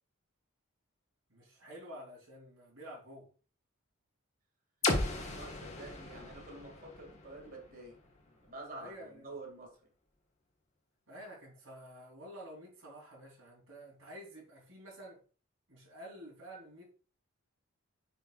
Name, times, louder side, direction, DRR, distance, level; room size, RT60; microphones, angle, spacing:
voice 1, 1.3-3.3 4.8-5.4 8.7-9.2 11.1-15.2 15.7-16.9, equal, 60° right, 3.4 m, -50 dB
sound 1, 4.8-8.7, left 2 dB, 30° left, 1.4 m, -37 dB
voice 2, 5.2-8.0 8.3-9.9, right 2 dB, 40° right, 2.3 m, -49 dB
10.5 x 5.6 x 2.5 m
head